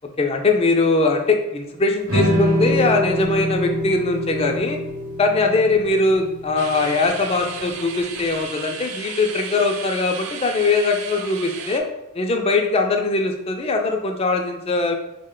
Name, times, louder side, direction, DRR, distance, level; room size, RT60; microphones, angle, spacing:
voice 1, 0.2-4.8 5.2-11.9 12.1-14.9, left 3 dB, 30° left, 3 dB, 0.4 m, -21 dB
sound 1, 2.1-8.4, equal, 60° right, 0.9 m, -25 dB
sound 2, 6.6-11.8, right 6 dB, 80° right, 0.4 m, -34 dB
3.9 x 2.1 x 3.6 m, 0.89 s
head